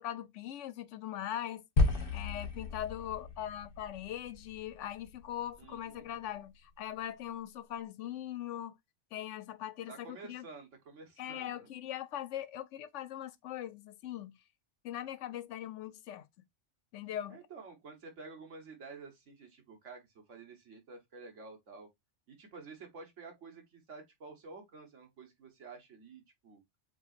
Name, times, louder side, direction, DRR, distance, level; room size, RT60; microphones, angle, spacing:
voice 1, 0.0-1.6 2.1-8.8 9.1-10.5 11.2-14.4 14.8-16.3 16.9-17.4, left 11 dB, 90° left, 0.9 m, -41 dB
sound 1, 1.8-6.1, left 2 dB, 50° left, 1.1 m, -34 dB
voice 2, 5.6-6.1 9.9-11.7 17.3-21.9 22.3-26.6, right 4 dB, 80° right, 1.7 m, -50 dB
7.0 x 2.9 x 2.4 m
omnidirectional pair, 1.2 m